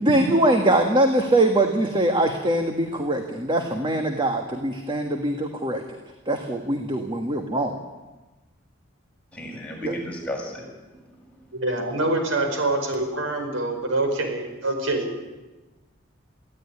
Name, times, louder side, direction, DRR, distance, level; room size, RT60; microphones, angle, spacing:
voice 1, 0.0-5.8 6.3-7.8 9.8-10.0, right 1 dB, 25° right, 4 dB, 1.6 m, -22 dB
voice 2, 9.4-10.5, equal, 5° left, -3 dB, 7.4 m, -32 dB
voice 3, 11.5-15.2, right 2 dB, 90° right, 5 dB, 4.9 m, -25 dB
23.0 x 15.5 x 9.9 m, 1.2 s
head